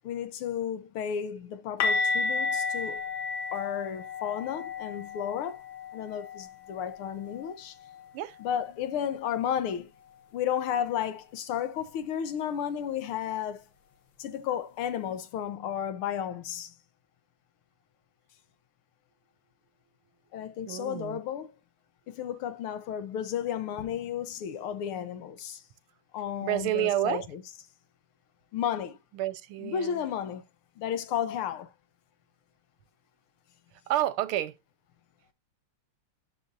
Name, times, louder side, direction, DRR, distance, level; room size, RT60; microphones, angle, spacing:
voice 1, 0.0-3.0 3.5-5.6 5.9-7.8 8.4-9.9 10.3-13.6 14.2-16.7 20.3-21.5 22.1-25.6 26.1-27.4 28.5-29.0 29.6-30.4 30.8-31.7, left 9 dB, 80° left, 1.8 m, -33 dB
sound 1, 1.8-7.6 7.8-8.1 8.4-8.6 11.8-11.9, left 4 dB, 65° left, 1.9 m, -32 dB
voice 2, 20.6-21.2 26.4-27.3 29.1-30.0 33.9-34.5, right 13 dB, 85° right, 1.6 m, -29 dB
11.5 x 6.7 x 2.7 m
omnidirectional pair, 2.3 m